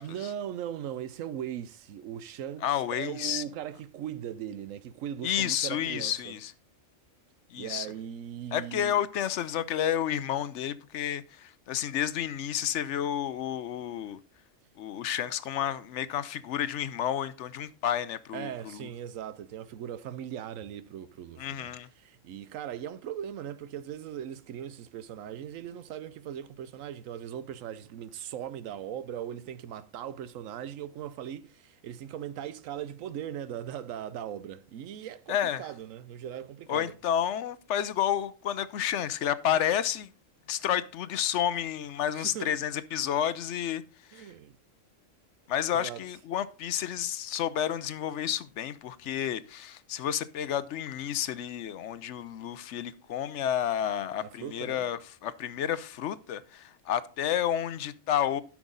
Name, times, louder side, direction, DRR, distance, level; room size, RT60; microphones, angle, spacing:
voice 1, 0.0-6.4 7.5-9.0 18.3-21.7 22.0-36.9 42.1-42.5 44.1-44.6 45.7-46.0 54.2-54.9, right 10 dB, 90° right, 1.0 m, -39 dB
voice 2, 2.6-3.4 5.2-6.5 7.5-7.9 8.5-14.2 14.8-18.9 21.4-21.9 35.3-35.6 36.7-40.1 40.5-43.8 44.1-44.2 45.5-58.4, left 10 dB, 70° left, 0.9 m, -30 dB
12.0 x 6.1 x 3.9 m
omnidirectional pair, 1.4 m